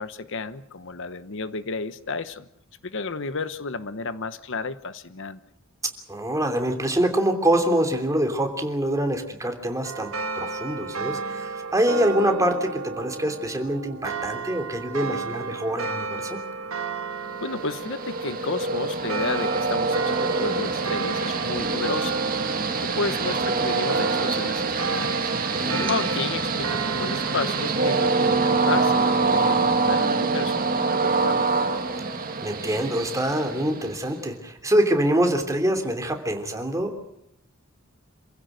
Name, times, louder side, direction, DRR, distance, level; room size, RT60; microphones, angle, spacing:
voice 1, 0.0-2.5 2.8-5.4 17.4-22.2 22.8-25.3 25.7-31.5, left 4 dB, 65° left, 13 dB, 1.0 m, -32 dB
voice 2, 6.1-16.4 25.5-25.9 32.4-36.9, right 1 dB, 15° right, 5 dB, 3.1 m, -25 dB
sound 1, 9.8-27.9, right 4 dB, 85° right, 1.7 m, -33 dB
Train, 17.4-34.2, right 3 dB, 45° right, 2.2 m, -25 dB
28.0 x 15.5 x 8.0 m, 0.82 s
head